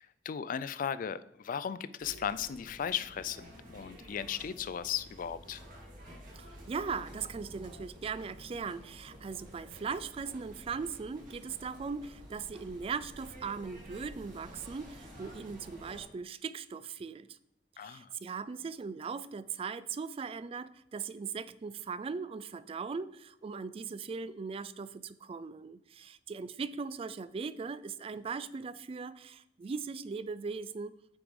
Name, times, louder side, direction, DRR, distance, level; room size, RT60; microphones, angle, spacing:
voice 1, 0.0-5.6 17.8-18.1, left 8 dB, 50° left, 15 dB, 0.3 m, -36 dB
sound 1, 2.0-16.0, equal, 50° right, 2.3 m, -51 dB
voice 2, 6.4-17.3 17.8-30.9, right 5 dB, 30° right, 16 dB, 0.3 m, -39 dB
8.6 x 4.7 x 3.6 m, 0.83 s
head